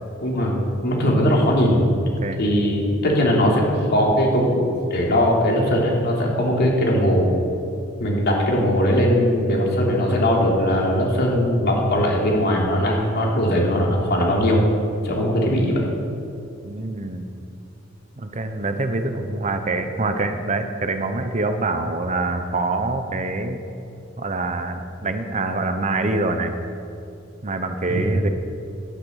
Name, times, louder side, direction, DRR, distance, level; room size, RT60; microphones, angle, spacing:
voice 1, 0.2-1.8 2.4-7.2 8.0-14.6 15.0-15.8 27.9-28.1, equal, 55° left, -2 dB, 3.3 m, -20 dB
voice 2, 16.6-17.3 18.2-23.6 24.2-26.5 27.4-28.3, right 2 dB, 35° right, 7 dB, 0.9 m, -25 dB
12.0 x 10.5 x 8.0 m, 2.7 s
head